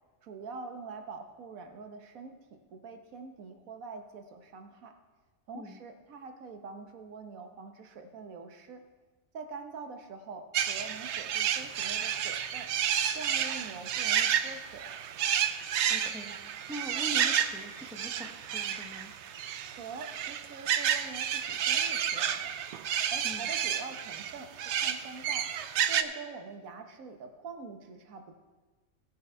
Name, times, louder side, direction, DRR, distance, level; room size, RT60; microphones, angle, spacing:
voice 1, 0.2-2.3 2.7-4.9 5.5-8.8 9.3-12.7 13.1-14.8 19.7-22.5 23.1-25.5 25.8-28.3, right 4 dB, 85° right, 6 dB, 1.5 m, -44 dB
sound 1, 10.5-26.0, right 9 dB, 65° right, 0.8 m, -31 dB
voice 2, 15.6-19.1 23.2-23.5, right 1 dB, 5° right, 3 dB, 0.9 m, -43 dB
16.5 x 6.8 x 4.5 m, 1.3 s
omnidirectional pair, 1.4 m